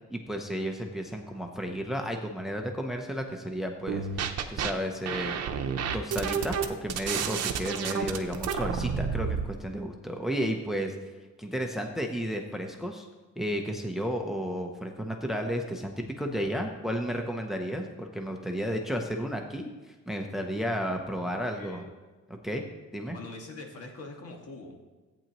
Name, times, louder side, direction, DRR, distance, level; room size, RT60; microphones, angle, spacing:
voice 1, 0.1-5.4 5.9-10.9 11.4-13.1 13.4-21.8 22.3-22.6 22.9-23.2, equal, ahead, 3 dB, 0.7 m, -33 dB
sound 1, 3.9-4.7 5.0-9.5, right 6 dB, 60° right, 0.8 m, -30 dB
voice 2, 21.2-21.9 23.1-24.8, left 2 dB, 55° left, 2 dB, 1.8 m, -44 dB
14.5 x 8.8 x 3.0 m, 1.2 s
cardioid pair, 150°, 29 cm